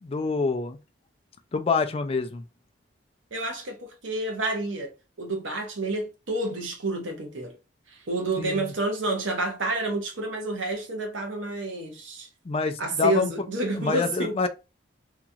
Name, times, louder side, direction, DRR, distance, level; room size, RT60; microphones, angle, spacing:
voice 1, 0.0-0.8 1.5-2.4 8.4-8.6 12.5-13.3 13.8-14.5, left 4 dB, 30° left, 0.3 m, -26 dB
voice 2, 3.3-4.9 5.2-7.5 7.9-12.3 12.8-14.4, right 2 dB, 90° right, 0.9 m, -29 dB
2.9 x 2.4 x 2.6 m
head